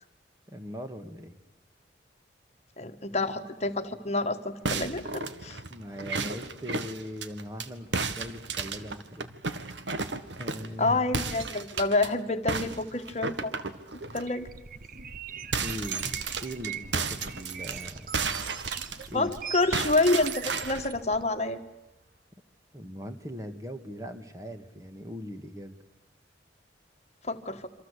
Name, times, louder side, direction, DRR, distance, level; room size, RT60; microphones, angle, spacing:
voice 1, 0.5-1.4 5.7-9.3 10.4-11.0 15.6-18.1 18.4-18.5 18.9-19.3 22.7-25.7, equal, 20° right, 7 dB, 2.0 m, -40 dB
voice 2, 2.8-5.6 10.8-13.6 14.1-14.5 19.1-21.6 27.2-27.7, left 2 dB, 40° left, 7 dB, 1.5 m, -28 dB
sound 1, 4.7-7.7 7.9-10.8 11.1-12.1 12.5-14.2 14.7-14.8 15.1-19.4 19.7-20.9, right 4 dB, 90° right, 1.9 m, -33 dB
sound 2, 14.2-21.2, right 7 dB, 50° right, 1.1 m, -41 dB
27.5 x 26.0 x 8.4 m, 0.88 s
head